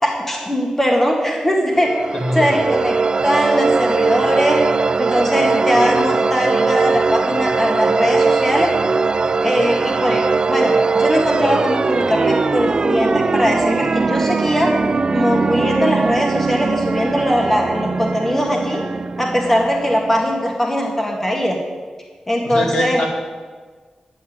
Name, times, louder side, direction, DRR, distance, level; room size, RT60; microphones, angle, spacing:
voice 1, 0.0-1.9 2.3-2.9 3.2-4.6 5.0-8.7 9.4-14.7 15.1-18.8 19.2-21.6 22.3-23.0, equal, 15° left, 0 dB, 1.9 m, -20 dB
sound 1, 1.7-20.4, right 4 dB, 45° right, 0.5 m, -20 dB
voice 2, 2.1-2.5 22.4-23.1, equal, 60° left, 0 dB, 2.8 m, -22 dB
11.0 x 8.2 x 9.4 m, 1.4 s
wide cardioid pair, 125°, 2 cm